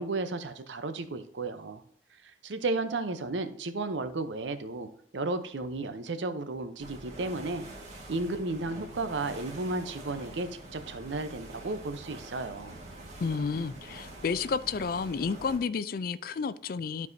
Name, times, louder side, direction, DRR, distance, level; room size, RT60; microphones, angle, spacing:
voice 1, 0.0-1.8 2.4-7.6 8.1-12.8, right 3 dB, 90° right, 0.7 m, -33 dB
sound 1, 6.8-15.6, right 1 dB, 40° right, 1.6 m, -46 dB
voice 2, 13.2-17.1, left 5 dB, 55° left, 0.4 m, -31 dB
12.0 x 4.7 x 2.7 m
head